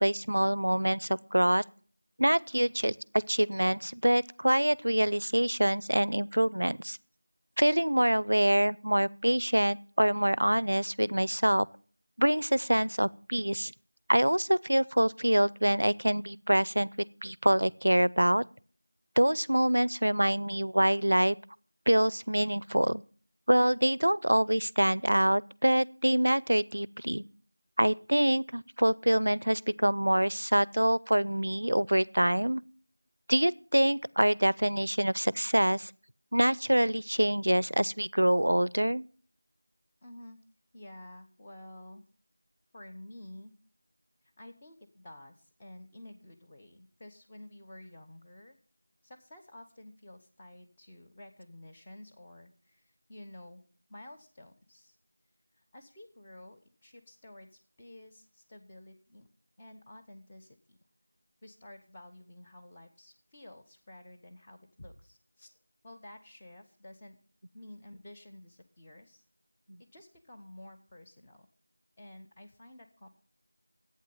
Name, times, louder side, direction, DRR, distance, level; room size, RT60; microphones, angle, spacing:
voice 1, 0.0-1.6 2.2-7.0 7.6-11.7 12.2-13.7 14.1-18.4 19.2-21.4 21.9-23.0 23.5-27.2 27.8-32.6 33.3-35.9 36.3-39.0, right 1 dB, 75° right, 0.5 m, -25 dB
voice 2, 40.0-40.4 40.7-42.0 42.7-43.5 44.2-48.6 49.0-53.6 53.9-55.0 55.5-59.3 59.6-60.8 61.4-65.5 65.8-67.2 67.5-69.2 69.8-71.5 72.0-73.1, left 1 dB, 10° left, 1.0 m, -51 dB
11.5 x 8.7 x 5.5 m
figure-of-eight pair, 175°, 0 cm